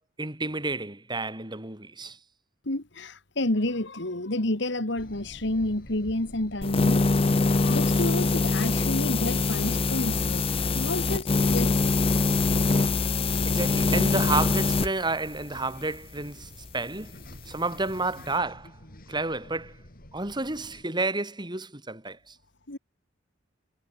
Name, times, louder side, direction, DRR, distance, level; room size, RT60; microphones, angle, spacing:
voice 1, 0.2-2.2 13.4-17.2 17.5-18.8 19.1-19.8 20.1-22.4, right 3 dB, 25° right, 3.7 m, -30 dB
voice 2, 2.7-7.0 7.5-10.4 10.7-11.9 22.7-22.8, left 1 dB, 65° left, 2.5 m, -30 dB
sound 1, 5.0-20.8, left 1 dB, 50° left, 4.6 m, -48 dB
sound 2, 6.6-14.9, left 3 dB, 30° left, 0.6 m, -23 dB
head